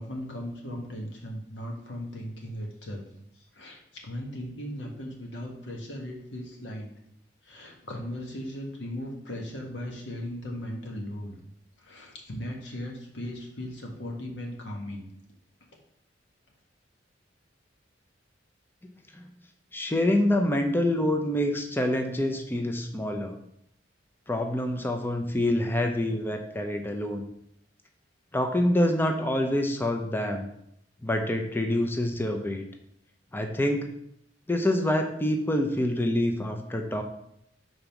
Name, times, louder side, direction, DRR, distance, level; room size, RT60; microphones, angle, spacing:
voice 1, 0.0-3.1 3.3-6.9 7.4-11.4 11.8-15.1, equal, 75° left, 0 dB, 1.6 m, -37 dB
voice 2, 19.7-23.3 24.3-27.2 28.3-30.5 31.0-32.6 33.3-33.9 34.5-37.0, left 1 dB, 10° left, 4 dB, 0.6 m, -26 dB
5.3 x 4.0 x 5.9 m, 0.75 s
head